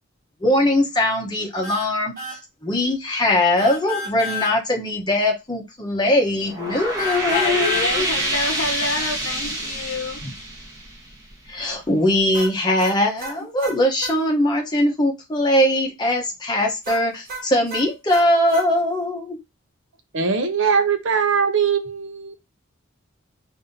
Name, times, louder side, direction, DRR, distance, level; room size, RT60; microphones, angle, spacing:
voice 1, 0.4-8.1 10.2-10.3 11.5-19.4, left 1 dB, 20° left, 0.8 m, -21 dB
sound 1, 1.6-1.9 2.2-2.4 3.6-4.5 7.0-7.9 12.3-14.2 16.8-18.7, left 3 dB, 45° right, 1.5 m, -31 dB
sound 2, 6.3-11.6, right 1 dB, 15° right, 1.0 m, -27 dB
voice 2, 7.3-10.2, left 3 dB, 75° left, 0.8 m, -27 dB
voice 3, 20.1-22.3, right 6 dB, 65° right, 0.7 m, -21 dB
5.4 x 2.6 x 2.7 m
head